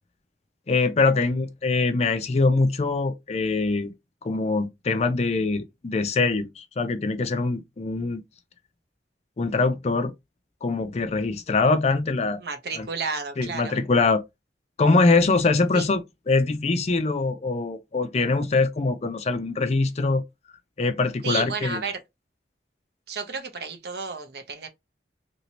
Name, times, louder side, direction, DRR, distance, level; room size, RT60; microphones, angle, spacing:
voice 1, 0.7-3.9 4.2-8.2 9.4-10.1 10.6-12.4 12.8-12.9 13.4-14.2 14.8-20.2 20.8-21.8, left 3 dB, 40° left, 0.4 m, -23 dB
voice 2, 12.4-13.8 15.7-15.9 21.2-22.0 23.1-24.7, right 5 dB, 65° right, 0.8 m, -32 dB
2.9 x 2.7 x 2.9 m
head